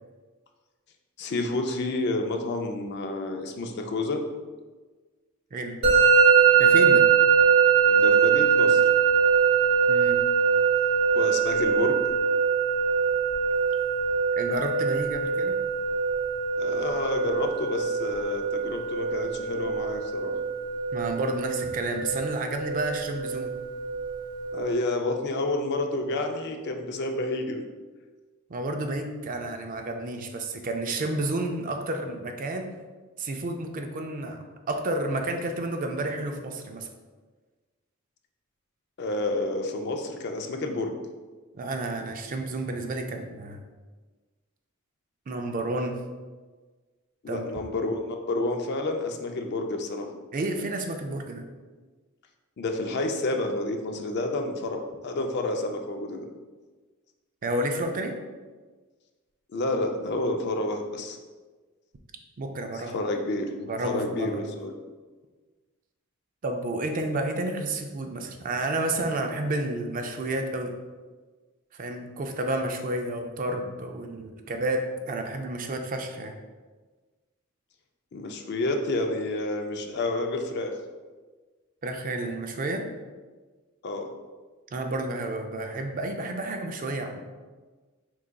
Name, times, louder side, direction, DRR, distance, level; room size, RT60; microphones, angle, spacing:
voice 1, 1.2-4.2 7.9-8.8 11.1-12.0 16.6-20.3 24.5-27.6 39.0-40.9 47.2-50.1 52.6-56.3 59.5-61.2 62.7-63.5 63.8-64.7 78.1-80.7 83.8-84.1, left 2 dB, 55° left, 4 dB, 0.4 m, -29 dB
Musical instrument, 5.8-24.7, right 7 dB, 60° right, 0.9 m, -22 dB
voice 2, 6.6-7.1 9.9-10.3 14.4-15.6 20.9-23.5 28.5-32.7 33.2-36.9 41.5-43.6 45.3-46.0 47.3-47.5 50.3-51.5 57.4-58.1 62.4-63.0 63.7-64.5 66.4-70.7 71.7-76.4 81.8-82.9 84.7-87.2, right 2 dB, 40° right, 5 dB, 0.4 m, -30 dB
4.6 x 3.8 x 2.2 m, 1.4 s
head